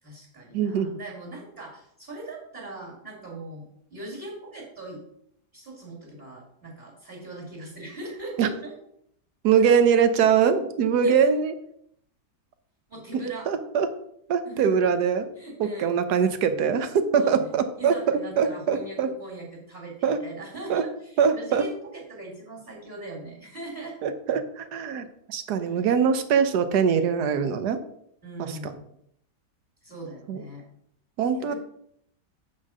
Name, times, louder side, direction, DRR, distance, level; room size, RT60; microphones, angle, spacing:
voice 1, 0.0-5.0 5.5-8.7 9.6-9.7 11.0-11.2 12.9-13.5 14.4-14.8 15.3-16.0 17.2-24.1 25.7-25.8 28.2-28.9 29.8-30.6 31.3-31.6, right 2 dB, 30° right, -3 dB, 2.5 m, -40 dB
voice 2, 0.5-0.9 8.4-8.5 9.4-11.5 13.5-13.9 14.3-15.3 15.6-19.1 20.0-20.2 20.7-20.8 21.2-21.7 24.0-27.8 28.4-28.7 30.3-30.4 31.2-31.5, right 7 dB, 70° right, 10 dB, 1.3 m, -23 dB
8.3 x 4.2 x 6.1 m, 0.72 s
omnidirectional pair, 1.8 m